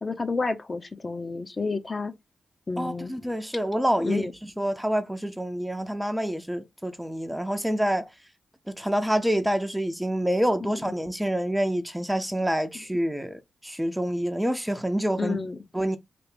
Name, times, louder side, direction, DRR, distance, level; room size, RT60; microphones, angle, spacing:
voice 1, 0.0-2.1 2.7-3.1 4.0-4.3 10.7-10.9 15.2-15.6, left 4 dB, 40° left, 0.6 m, -30 dB
voice 2, 2.8-8.1 8.7-15.4 15.7-16.0, equal, 5° right, 0.4 m, -27 dB
3.3 x 2.5 x 3.3 m
cardioid pair, 60°, 0 cm